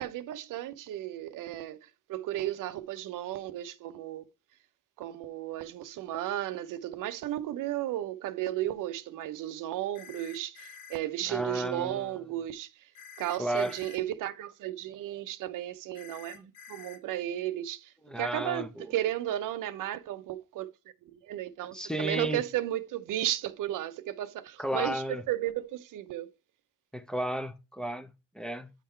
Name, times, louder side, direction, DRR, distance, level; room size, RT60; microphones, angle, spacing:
voice 1, 0.0-4.3 5.0-12.7 13.2-20.7 21.1-26.3, right 13 dB, 85° right, 0.6 m, -34 dB
sound 1, 9.9-11.0 12.9-14.0 15.9-17.0, left 6 dB, 90° left, 1.4 m, -49 dB
voice 2, 11.3-12.2 13.4-13.8 16.3-16.4 18.1-18.9 21.7-22.4 24.6-25.2 26.9-28.7, right 1 dB, ahead, 0.7 m, -33 dB
8.9 x 3.7 x 4.3 m
cardioid pair, 90°, 31 cm